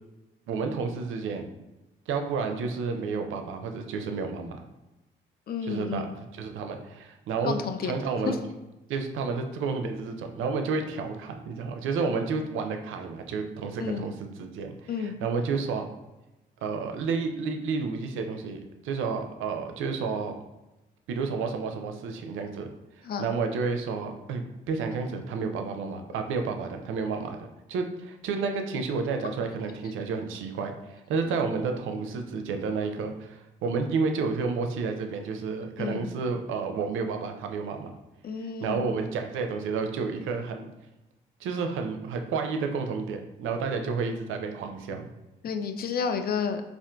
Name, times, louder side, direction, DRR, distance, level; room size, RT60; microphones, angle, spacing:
voice 1, 0.5-1.5 2.1-4.6 5.7-6.1 6.3-7.5 7.8-8.4 8.9-14.1 14.4-15.8 16.6-20.3 21.1-22.7 23.0-24.4 24.7-38.0 38.6-40.7 41.4-45.1, right 4 dB, 75° right, 5 dB, 0.4 m, -31 dB
voice 2, 5.5-6.2 7.4-8.0 8.3-8.4 13.8-14.1 14.9-15.2 23.0-23.3 35.8-36.1 38.2-38.9 45.4-46.6, left 6 dB, 50° left, 7 dB, 0.4 m, -31 dB
3.6 x 2.4 x 2.2 m, 1.0 s
supercardioid pair, 50°, 21 cm